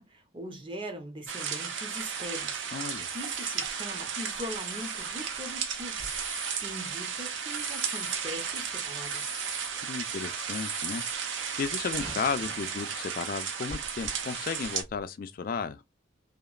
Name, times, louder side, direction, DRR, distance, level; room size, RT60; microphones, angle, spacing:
voice 1, 0.0-2.6 3.1-6.1 6.6-9.4, equal, 25° right, 0.6 m, -41 dB
sound 1, 1.3-14.8, right 7 dB, 70° right, 0.5 m, -34 dB
sound 2, 1.9-2.3 3.0-3.7 4.4-5.1 5.8-6.7 7.5-8.2 9.0-9.7 10.5-11.2 11.6-12.8 13.4-13.5 13.7-14.1 14.6-15.0, right 3 dB, 50° right, 1.1 m, -41 dB
voice 2, 2.7-3.1 9.8-11.0 11.6-15.8, left 5 dB, 45° left, 0.3 m, -34 dB
2.8 x 2.4 x 2.3 m
head